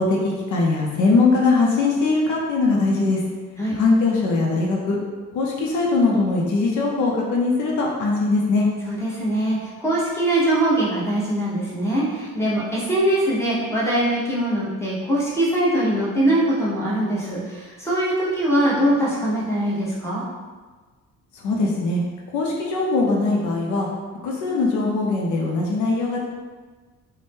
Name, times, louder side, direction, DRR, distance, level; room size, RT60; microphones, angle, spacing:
voice 1, 0.0-3.2 3.7-5.0 5.3-8.7 21.3-22.0 22.3-23.9 24.2-26.2, left 3 dB, 75° left, -2 dB, 0.6 m, -21 dB
voice 2, 8.9-20.2, right 1 dB, 10° left, -7 dB, 0.9 m, -22 dB
2.6 x 2.1 x 3.4 m, 1.4 s
cardioid pair, 90°, 30 cm